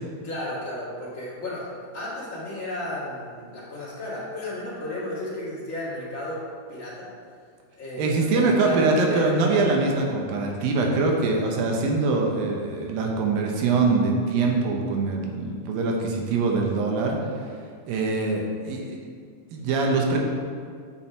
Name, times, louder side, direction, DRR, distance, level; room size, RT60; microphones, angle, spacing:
voice 1, 0.2-6.4 6.7-7.1 7.8-9.6, left 1 dB, 30° left, -8 dB, 1.9 m, -33 dB
voice 2, 8.0-17.2 17.9-19.0 19.5-20.2, right 3 dB, 85° right, 0 dB, 2.7 m, -23 dB
8.2 x 6.1 x 4.5 m, 2.1 s
omnidirectional pair, 4.0 m